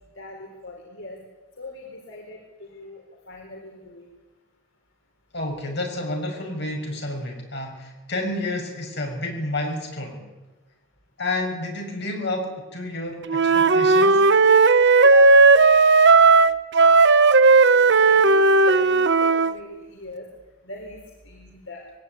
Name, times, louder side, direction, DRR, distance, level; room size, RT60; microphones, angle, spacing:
voice 1, 0.1-1.2 1.6-4.1 15.0-15.3 17.7-20.3 20.6-21.8, left 2 dB, 70° left, 0 dB, 4.3 m, -40 dB
voice 2, 5.3-10.2 11.2-14.2, left 2 dB, 55° left, 2 dB, 6.5 m, -30 dB
Wind instrument woodwind instrument, 13.3-19.5, right 3 dB, 55° right, 0.8 m, -15 dB
22.0 x 18.0 x 9.6 m, 1.1 s
head